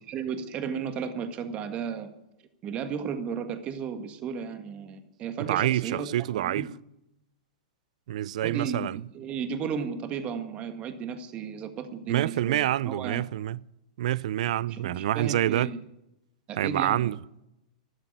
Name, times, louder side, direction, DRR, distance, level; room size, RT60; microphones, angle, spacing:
voice 1, 0.1-2.1 2.6-6.7 8.4-13.3 14.6-15.8 16.5-17.1, right 6 dB, 30° right, 1.7 m, -34 dB
voice 2, 5.4-6.7 8.1-9.0 12.1-13.6 14.0-15.7 16.6-17.2, right 13 dB, 70° right, 0.5 m, -27 dB
12.5 x 12.5 x 9.2 m
hypercardioid pair, 130°, 4 cm